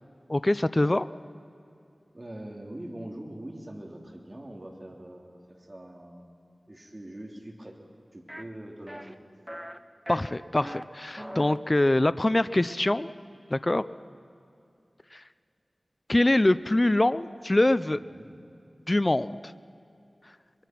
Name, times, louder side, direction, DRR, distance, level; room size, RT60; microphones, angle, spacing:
voice 1, 0.3-1.1 10.1-13.1 13.5-13.8 15.1-15.2 16.1-18.0 18.9-19.5, left 1 dB, 30° left, 15 dB, 0.5 m, -24 dB
voice 2, 2.1-6.4 6.7-7.8 8.1-9.1 18.0-18.4, right 1 dB, 35° right, 1 dB, 3.1 m, -43 dB
sound 1, 8.3-8.4 8.9-9.1 9.5-9.8 10.1-10.8 11.2-11.6, equal, 5° right, 0.9 m, -39 dB
23.5 x 22.0 x 6.0 m, 2.6 s
wide cardioid pair, 65°, 0 cm